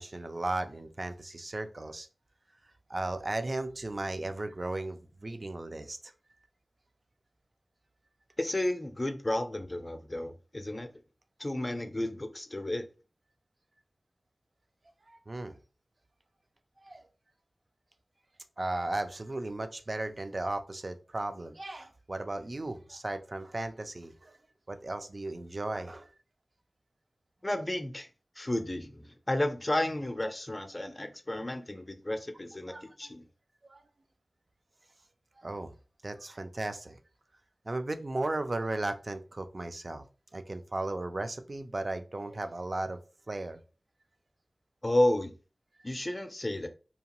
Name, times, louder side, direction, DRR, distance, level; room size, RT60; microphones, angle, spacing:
voice 1, 0.0-2.1 2.9-6.1 15.1-15.6 16.8-17.0 18.6-24.4 24.7-26.1 32.7-33.1 33.7-33.8 35.4-35.7 36.0-37.0 37.7-40.1 40.3-43.0 43.3-43.6, right 2 dB, 45° right, 0.4 m, -36 dB
voice 2, 8.4-10.9 11.4-12.9 27.4-28.1 28.4-33.2 44.8-45.3 45.8-46.7, left 1 dB, 30° left, 0.4 m, -32 dB
2.8 x 2.2 x 2.9 m
wide cardioid pair, 55°, 0 cm